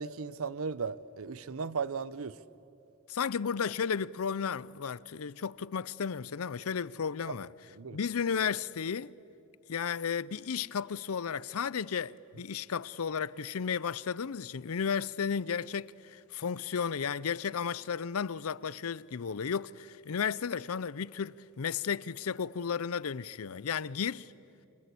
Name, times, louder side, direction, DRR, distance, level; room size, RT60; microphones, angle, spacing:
voice 1, 0.0-2.4 7.3-7.4 7.7-8.0, right 5 dB, 70° right, 0.7 m, -36 dB
voice 2, 3.1-7.5 7.9-9.1 9.7-24.3, left 6 dB, 75° left, 0.5 m, -33 dB
28.5 x 25.0 x 8.4 m
head